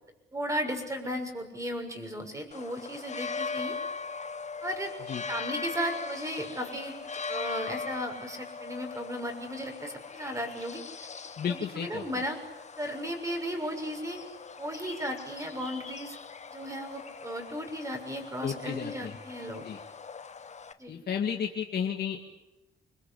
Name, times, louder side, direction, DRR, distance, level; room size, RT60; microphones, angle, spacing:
voice 1, 0.3-3.8 4.6-4.9 5.3-6.9 7.3-11.1 11.5-12.4 12.8-14.2 14.6-16.2 16.5-19.7 20.8-20.9, equal, 15° right, 5 dB, 6.6 m, -35 dB
sound 1, 2.5-20.7, left 4 dB, 35° left, 1.5 m, -40 dB
voice 2, 11.4-12.0 18.4-19.2 19.6-19.8 20.9-22.2, left 7 dB, 55° left, 1 dB, 2.4 m, -32 dB
26.0 x 21.0 x 8.7 m, 0.98 s
cardioid pair, 90°, 20 cm